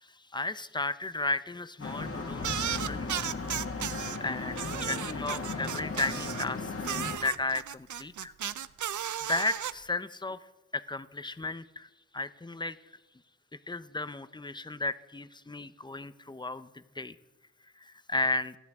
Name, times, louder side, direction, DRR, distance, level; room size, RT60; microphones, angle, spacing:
voice 1, 0.0-3.5 4.0-6.7 7.2-8.3 9.3-10.4 10.7-12.8 13.7-17.2 17.8-18.6, left 2 dB, 15° left, 14 dB, 0.6 m, -34 dB
sound 1, 1.8-7.2, left 3 dB, 55° left, 1.8 m, -36 dB
sound 2, 2.4-4.2 4.6-6.5 6.8-9.7, right 9 dB, 85° right, 0.5 m, -35 dB
29.0 x 11.5 x 3.6 m, 1.1 s
wide cardioid pair, 90°, 29 cm